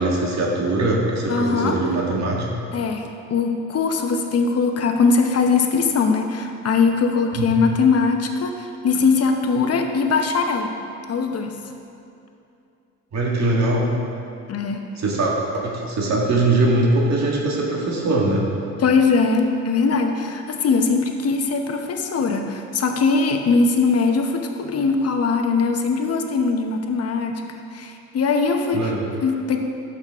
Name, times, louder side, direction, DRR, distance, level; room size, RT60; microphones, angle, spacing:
voice 1, 0.0-2.4 7.4-7.6 13.1-13.9 15.0-18.4 28.7-29.0, right 2 dB, 65° right, -3 dB, 1.8 m, -21 dB
voice 2, 1.3-1.8 2.7-10.7 11.1-11.6 14.5-14.9 18.8-28.9 29.2-29.6, left 4 dB, 55° left, 4 dB, 1.0 m, -21 dB
11.5 x 6.6 x 3.6 m, 2.6 s
cardioid pair, 90°, 30 cm